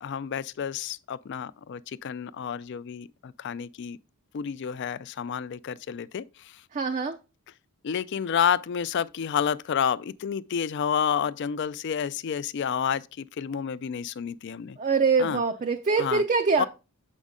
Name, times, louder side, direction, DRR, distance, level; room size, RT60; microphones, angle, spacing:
voice 1, 0.0-4.0 4.3-6.6 7.8-14.8 15.2-15.4 16.0-16.2 16.6-16.7, left 8 dB, 50° left, 0.3 m, -30 dB
voice 2, 6.7-7.2 14.8-16.7, right 4 dB, 35° right, 0.4 m, -24 dB
7.1 x 5.3 x 3.6 m
head